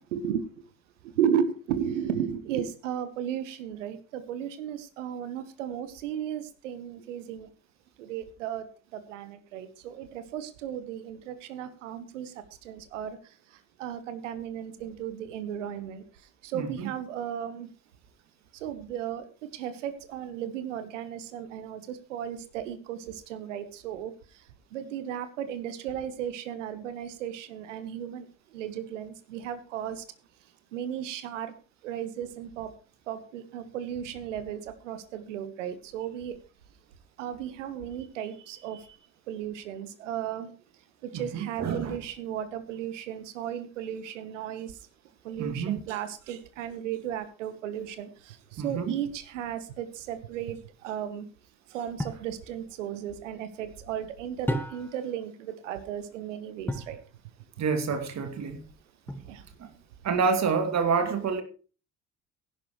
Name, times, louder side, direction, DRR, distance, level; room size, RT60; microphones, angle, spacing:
voice 1, 0.1-0.4 1.2-7.5 8.0-8.6 8.9-12.3 12.6-13.2 13.8-16.0 16.4-17.7 18.6-19.3 19.5-23.0 23.3-24.1 24.7-28.2 28.5-30.0 30.7-31.5 31.8-32.7 33.1-36.3 37.2-38.8 39.3-40.5 41.0-44.7 45.2-48.1 48.6-51.3 51.7-57.0 59.3-59.4, right 9 dB, 75° right, 1.3 m, -34 dB
voice 2, 16.5-16.9 41.1-42.0 45.4-45.8 48.6-49.0 57.6-58.6 59.6-59.7 60.0-61.4, right 5 dB, 45° right, 2.5 m, -28 dB
sound 1, 52.0-52.3 54.5-55.1 56.7-57.0 59.1-59.6, equal, 5° left, 1.8 m, -33 dB
16.5 x 11.0 x 3.1 m
figure-of-eight pair, 50°, 37 cm